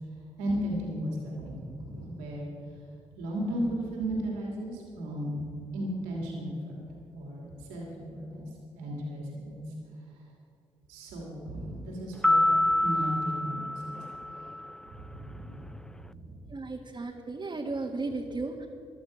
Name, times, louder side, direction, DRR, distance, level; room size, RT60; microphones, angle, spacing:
voice 1, 0.4-2.5 3.2-5.5 5.7-6.8 7.1-8.5 8.8-9.6 10.9-12.4 12.8-14.0 14.9-16.4, equal, 85° right, -2 dB, 2.8 m, -35 dB
sound 1, 12.2-14.8, left 1 dB, 5° left, 0.3 m, -27 dB
voice 2, 16.5-18.7, right 3 dB, 30° right, -1 dB, 1.5 m, -35 dB
17.0 x 11.5 x 5.1 m, 2.5 s
hypercardioid pair, 45°, 15 cm